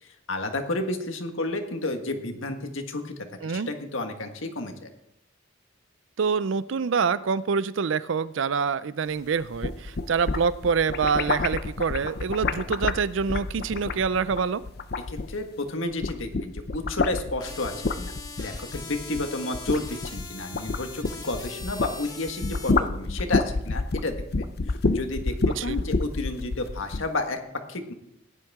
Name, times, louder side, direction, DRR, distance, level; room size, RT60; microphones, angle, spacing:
voice 1, 0.0-3.1 3.4-4.9 15.1-27.4 27.7-27.9, left 2 dB, 75° left, 5 dB, 1.6 m, -31 dB
voice 2, 6.2-14.6 25.6-25.8, right 5 dB, 70° right, 17 dB, 0.4 m, -26 dB
sound 1, 9.4-15.6 15.9-22.0 22.3-27.1, left 3 dB, 50° left, 0.6 m, -28 dB
sound 2, 17.4-22.7, left 3 dB, 20° left, 1.9 m, -41 dB
16.0 x 11.0 x 3.6 m, 0.78 s
head